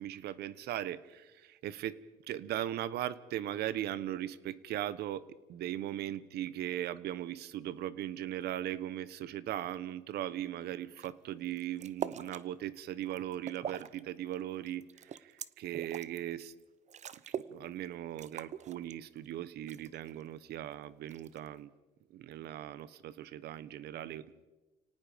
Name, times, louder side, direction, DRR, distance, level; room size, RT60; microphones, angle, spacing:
voice 1, 0.0-16.5 17.3-21.7 22.1-24.5, right 12 dB, 75° right, 17 dB, 1.1 m, -39 dB
sound 1, 10.9-11.1 11.4-12.4 12.9-14.0 14.3-16.2 16.6-16.7 16.9-17.6 17.8-17.9 18.2-19.3 19.7-20.2 21.1-21.6, right 8 dB, 45° right, 0.8 m, -42 dB
29.5 x 18.5 x 5.1 m, 1.1 s
cardioid pair, 110°, 17 cm